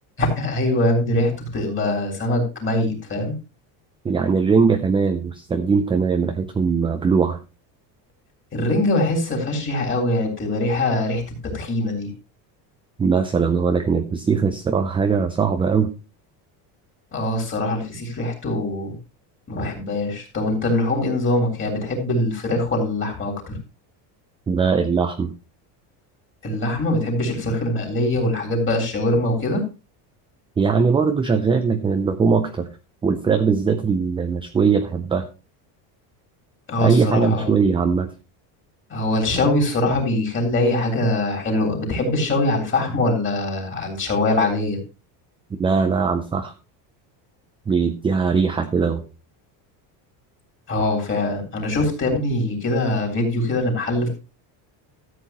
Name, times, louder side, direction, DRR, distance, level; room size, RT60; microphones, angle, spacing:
voice 1, 0.2-3.3 8.5-12.1 17.1-19.0 19.5-23.5 26.4-29.6 36.7-37.6 38.9-44.8 50.7-54.1, left 1 dB, 25° left, 2 dB, 3.7 m, -23 dB
voice 2, 4.0-7.4 13.0-15.9 24.5-25.3 30.6-32.7 33.0-35.2 36.8-38.1 45.6-46.5 47.7-49.1, right 5 dB, 10° right, 7 dB, 0.4 m, -20 dB
13.5 x 8.2 x 2.9 m, 0.30 s
cardioid pair, 150°, 48 cm